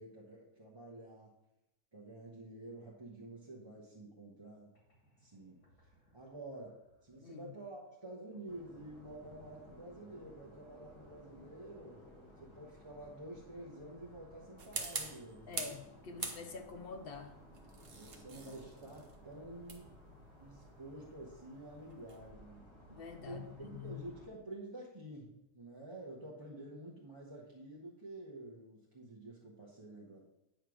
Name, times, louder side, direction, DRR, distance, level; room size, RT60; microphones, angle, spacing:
voice 1, 0.0-1.3 1.9-4.7 5.2-5.6 6.1-12.0 12.4-15.8 17.9-20.0 20.4-22.7 23.2-30.3, right 1 dB, 20° right, -5 dB, 1.0 m, -50 dB
sound 1, 4.5-4.6 4.7-15.4, left 1 dB, 90° left, 2.7 m, -64 dB
sound 2, 8.5-24.3, equal, 20° left, 1.2 m, -58 dB
sound 3, 14.6-15.8 16.2-16.8 17.5-22.3, right 4 dB, 45° right, 1.0 m, -44 dB
voice 2, 15.5-17.3 22.9-24.0, left 5 dB, 50° left, 6 dB, 0.8 m, -47 dB
9.0 x 3.3 x 6.2 m, 0.85 s
omnidirectional pair, 1.6 m